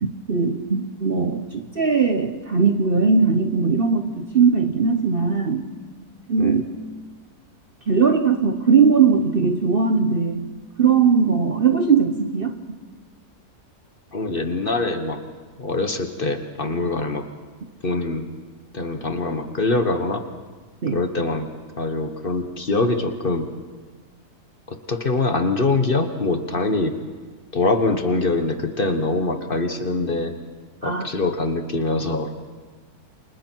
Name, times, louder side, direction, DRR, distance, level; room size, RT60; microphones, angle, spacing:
voice 1, 0.0-5.7 6.3-6.6 7.9-10.5 10.8-12.6 20.8-21.0 30.8-31.1, right 5 dB, 45° right, 7 dB, 0.9 m, -19 dB
voice 2, 14.1-15.2 15.6-17.3 17.8-18.3 18.7-20.2 20.9-21.5 21.8-23.5 24.7-27.0 27.5-30.4 30.8-32.3, left 3 dB, 35° left, 7 dB, 1.3 m, -23 dB
29.0 x 25.5 x 4.6 m, 1.4 s
omnidirectional pair, 1.7 m